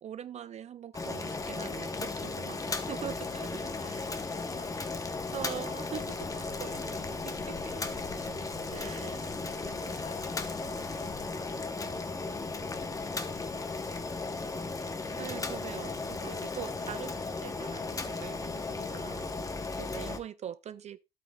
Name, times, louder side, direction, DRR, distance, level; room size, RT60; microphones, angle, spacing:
voice 1, 0.0-4.1 5.3-7.6 8.7-9.2 9.6-9.8 15.2-21.0, right 9 dB, 40° right, 0.4 m, -43 dB
Boiling, 0.9-20.2, left 3 dB, 20° left, 0.9 m, -36 dB
voice 2, 2.3-2.8 3.6-5.3 10.0-15.2, left 6 dB, 45° left, 2.7 m, -55 dB
sound 1, 3.0-11.3, left 5 dB, 90° left, 2.3 m, -52 dB
11.0 x 8.1 x 2.3 m
cardioid pair, 110°, 17 cm